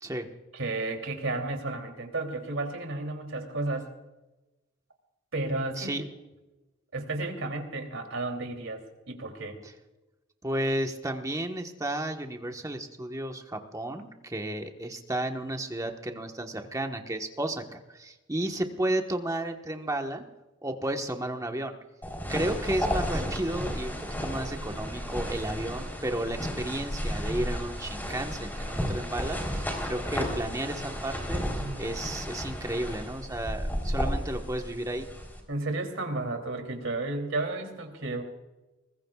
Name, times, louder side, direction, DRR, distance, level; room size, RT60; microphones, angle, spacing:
voice 1, 0.5-3.9 5.3-6.0 6.9-9.6 31.5-31.9 35.5-38.2, right 2 dB, 75° right, 4 dB, 3.1 m, -33 dB
voice 2, 10.4-20.2 20.6-21.7 22.3-35.1, right 1 dB, 15° right, 4 dB, 1.3 m, -33 dB
sound 1, 22.0-35.4, equal, 10° left, 3.7 m, -33 dB
23.5 x 20.5 x 2.4 m, 1.1 s
head